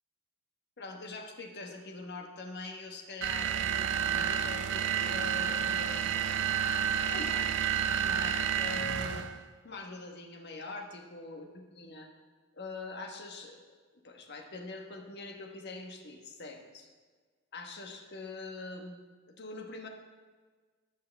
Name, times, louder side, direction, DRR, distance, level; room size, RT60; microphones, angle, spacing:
voice 1, 0.8-6.4 7.1-9.3 9.6-12.1 12.5-13.6 14.0-16.9 17.5-19.0 19.3-19.9, left 3 dB, 55° left, 2 dB, 1.4 m, -43 dB
sound 1, 3.2-9.4, right 8 dB, 60° right, 0.5 m, -30 dB
19.0 x 6.6 x 3.5 m, 1.4 s
head